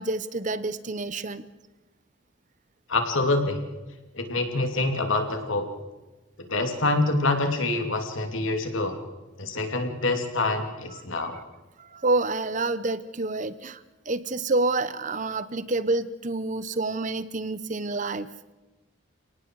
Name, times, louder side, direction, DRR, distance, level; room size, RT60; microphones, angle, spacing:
voice 1, 0.0-1.4 11.8-18.3, right 2 dB, 40° right, 15 dB, 0.9 m, -28 dB
voice 2, 2.9-3.6 4.1-5.6 6.5-9.0 9.4-11.4, left 2 dB, 85° left, 5 dB, 3.0 m, -26 dB
30.0 x 18.5 x 4.8 m, 1.1 s
head